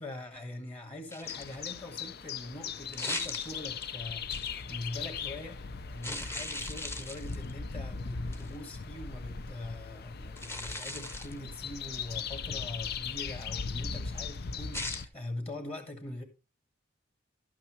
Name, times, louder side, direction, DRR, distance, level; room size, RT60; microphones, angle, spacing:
voice 1, 0.0-5.6 5.9-16.2, left 2 dB, 30° left, 2.0 m, -42 dB
sound 1, 1.1-1.8 2.9-3.9 4.3-4.6 6.0-7.5 8.3-8.6 10.4-11.4 14.7-15.0, left 2 dB, 15° left, 1.0 m, -39 dB
sound 2, 1.2-15.1, left 5 dB, 55° left, 0.6 m, -39 dB
12.0 x 8.6 x 3.1 m
head